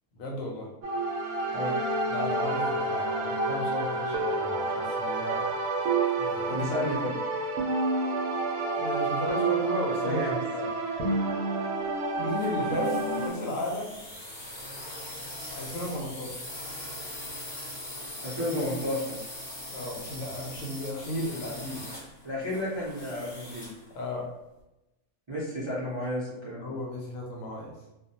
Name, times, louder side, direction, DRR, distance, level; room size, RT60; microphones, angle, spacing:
voice 1, 0.2-0.7 2.1-5.6 6.2-6.8 8.8-10.7 12.2-14.0 15.5-16.4 19.7-21.8 23.9-24.3 26.6-27.7, left 1 dB, 75° left, 0 dB, 0.9 m, -34 dB
sound 1, 0.8-13.3, right 3 dB, 75° right, 1.0 m, -29 dB
voice 2, 6.5-7.2 10.0-10.4 18.2-19.2 22.2-23.7 25.3-26.7, left 1 dB, 35° right, -9 dB, 0.4 m, -32 dB
sound 2, 12.3-23.9, left 1 dB, 40° left, 0.7 m, -41 dB
2.4 x 2.1 x 2.7 m, 0.95 s
omnidirectional pair, 1.5 m